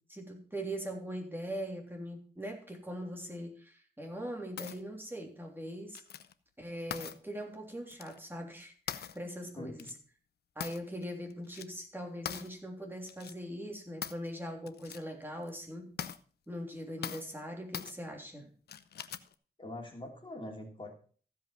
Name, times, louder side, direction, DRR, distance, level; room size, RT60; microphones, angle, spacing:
voice 1, 0.1-6.0 6.6-9.9 10.5-15.9 16.5-18.5, equal, 15° right, 1 dB, 3.2 m, -41 dB
sound 1, 4.6-4.8 6.0-6.3 6.9-7.2 7.9-8.2 8.9-9.2 9.8-9.9 10.6-11.0 11.3-11.7 12.3-12.5 13.1-13.3 14.0-14.3 14.7-15.0 15.4-15.5 16.0-16.2 17.0-17.3 17.7-17.9 18.7-19.3, left 9 dB, 80° left, 0.7 m, -41 dB
voice 2, 9.5-9.9 19.6-20.9, left 2 dB, 30° left, 1 dB, 2.9 m, -43 dB
15.0 x 5.4 x 5.8 m, 0.43 s
cardioid pair, 80°, 16 cm